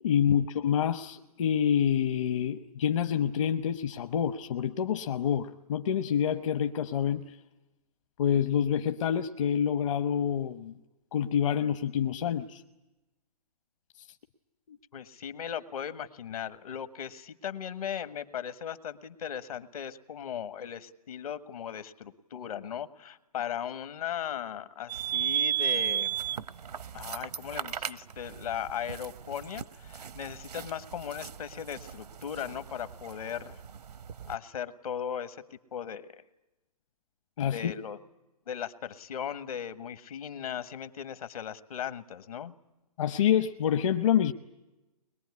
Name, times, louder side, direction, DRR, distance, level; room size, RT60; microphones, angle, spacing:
voice 1, 0.0-7.3 8.2-10.7 11.1-12.6 14.7-14.8 37.4-37.7 43.0-44.3, left 9 dB, 50° left, 8 dB, 1.0 m, -27 dB
voice 2, 14.9-26.1 26.9-33.6 34.3-36.1 37.4-38.0 38.5-42.5, left 9 dB, 65° left, 12 dB, 1.5 m, -37 dB
sound 1, 24.9-34.4, right 10 dB, 85° right, 1.0 m, -35 dB
22.5 x 22.0 x 9.7 m, 1.0 s
hypercardioid pair, 150°, 20 cm